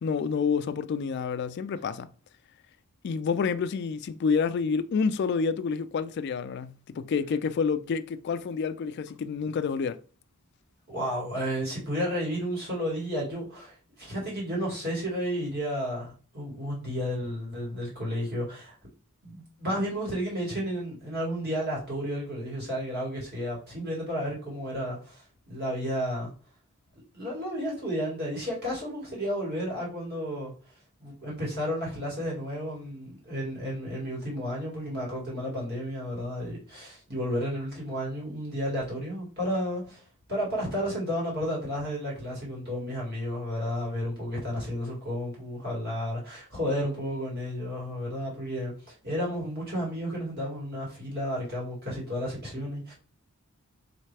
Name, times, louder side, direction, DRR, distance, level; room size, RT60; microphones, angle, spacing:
voice 1, 0.0-2.1 3.0-10.0, left 5 dB, 50° left, 0.3 m, -28 dB
voice 2, 10.9-18.7 19.2-26.3 27.1-30.5 31.0-40.0 40.3-52.9, equal, 45° right, 2.1 m, -32 dB
4.2 x 3.2 x 3.3 m
head